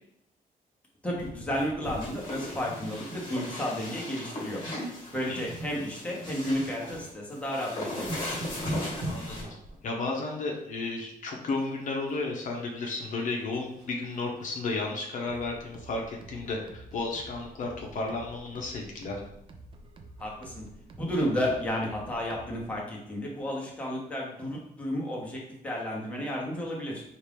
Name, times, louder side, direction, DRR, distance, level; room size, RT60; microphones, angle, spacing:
voice 1, 1.0-4.6 5.1-8.3 20.2-20.6 21.0-27.0, equal, 10° left, -3 dB, 0.9 m, -32 dB
sound 1, 1.1-3.5 3.8-4.0 4.5-4.8 5.1-7.1 7.5-7.6 7.9-9.8 11.6-12.1 12.5-13.9 14.4-14.5 14.8-14.9 15.3-15.4, right 1 dB, 50° right, 1.2 m, -40 dB
sound 2, 1.6-9.4, left 1 dB, 35° left, 1.4 m, -39 dB
voice 2, 9.0-9.5 9.8-19.2, left 3 dB, 55° left, 0 dB, 0.7 m, -33 dB
sound 3, 15.3-22.8, right 2 dB, 35° right, 0.4 m, -49 dB
4.4 x 2.5 x 3.4 m, 0.79 s
cardioid pair, 150°, 15 cm